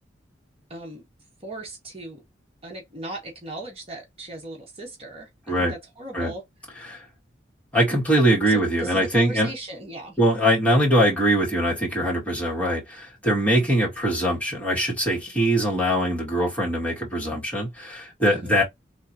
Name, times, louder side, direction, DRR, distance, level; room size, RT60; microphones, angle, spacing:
voice 1, 0.7-1.0 1.4-2.2 2.6-6.4 8.5-10.2 18.3-18.6, right 1 dB, 30° right, 1.8 m, -38 dB
voice 2, 7.7-9.5 10.2-18.6, equal, 10° left, 2.2 m, -22 dB
4.3 x 3.8 x 2.9 m
head